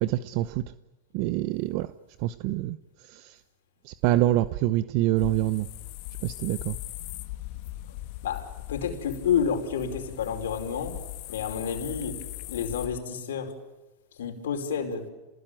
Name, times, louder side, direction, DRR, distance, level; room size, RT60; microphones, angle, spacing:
voice 1, 0.0-0.6 1.1-1.9 2.2-2.8 3.1-3.4 3.8-5.7 6.2-6.8, right 15 dB, 55° right, 13 dB, 0.8 m, -26 dB
sound 1, 5.2-13.0, left 16 dB, 55° left, 1.7 m, -39 dB
voice 2, 8.2-11.0 11.3-12.2 12.5-13.5 14.2-15.1, left 7 dB, 90° left, 4 dB, 5.2 m, -29 dB
28.5 x 20.5 x 9.1 m, 1.1 s
supercardioid pair, 130°, 0 cm